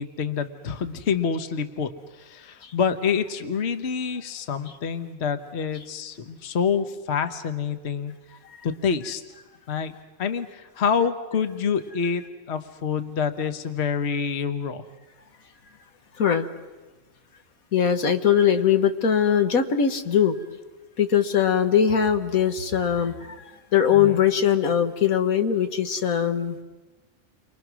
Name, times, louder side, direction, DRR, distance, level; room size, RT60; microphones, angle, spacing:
voice 1, 0.0-8.1 8.6-9.2 9.7-9.9 10.2-14.8 23.9-24.2, left 6 dB, 55° left, 9 dB, 1.3 m, -27 dB
voice 2, 17.7-20.4 21.0-23.3 23.7-26.6, left 8 dB, 85° left, 7 dB, 1.8 m, -21 dB
30.0 x 24.0 x 6.2 m, 1.2 s
omnidirectional pair, 1.4 m